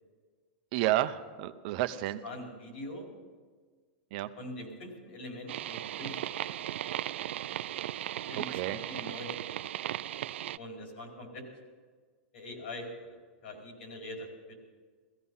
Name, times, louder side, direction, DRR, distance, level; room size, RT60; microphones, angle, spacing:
voice 1, 0.7-2.2 4.1-4.3 8.4-8.8, right 14 dB, 50° right, 11 dB, 0.7 m, -31 dB
voice 2, 2.2-3.1 4.4-6.5 8.3-9.5 10.6-11.4 12.3-14.5, left 1 dB, 75° left, 1 dB, 4.7 m, -43 dB
sound 1, 5.5-10.6, right 12 dB, 80° right, 0.4 m, -37 dB
16.0 x 15.0 x 5.6 m, 1.5 s
supercardioid pair, 145°, 6 cm